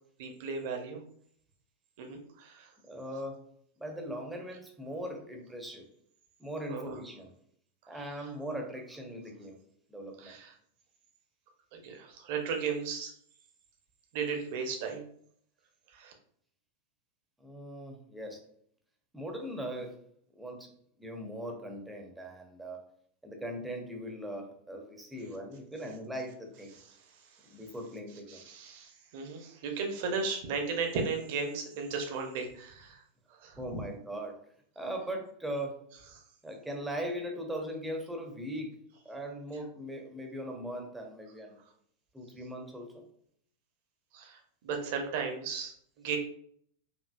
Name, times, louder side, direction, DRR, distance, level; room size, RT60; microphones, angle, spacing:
voice 1, 0.2-1.0 2.0-2.7 6.7-6.9 7.9-8.0 10.2-10.5 11.7-13.1 14.1-15.0 15.9-16.1 28.3-33.0 33.3-33.8 44.1-44.4 44.6-46.2, right 5 dB, 50° right, 3 dB, 0.8 m, -35 dB
voice 2, 2.8-3.4 3.8-5.9 6.4-7.3 7.9-9.6 9.9-10.4 17.4-18.4 19.1-20.0 20.3-20.7 21.0-22.8 23.2-26.8 27.5-28.4 33.6-34.4 34.8-35.8 36.4-38.8 39.0-41.6 42.1-43.0, equal, 5° right, 2 dB, 0.8 m, -39 dB
5.1 x 2.7 x 2.3 m, 0.64 s
figure-of-eight pair, 90°, 0 cm